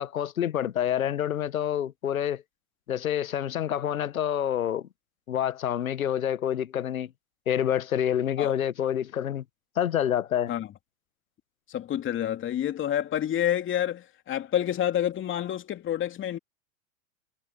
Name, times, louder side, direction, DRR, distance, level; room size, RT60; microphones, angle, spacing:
voice 1, 0.0-2.4 2.9-4.9 5.3-7.1 7.5-9.4 9.8-10.5, left 10 dB, 85° left, 1.3 m, -27 dB
voice 2, 11.7-16.4, left 11 dB, 30° left, 2.9 m, -28 dB
hypercardioid pair, 105°, 41 cm